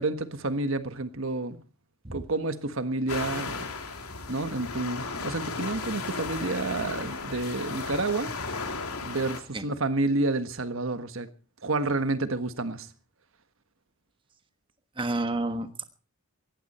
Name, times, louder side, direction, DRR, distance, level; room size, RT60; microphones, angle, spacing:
voice 1, 0.0-1.6 2.1-3.7 4.3-8.3 9.0-11.3 11.6-12.9, right 2 dB, 65° right, 1.4 m, -29 dB
sound 1, 3.1-9.4, left 4 dB, 85° left, 3.0 m, -35 dB
voice 2, 15.0-15.8, right 2 dB, 20° right, 1.3 m, -30 dB
19.0 x 15.5 x 4.3 m
head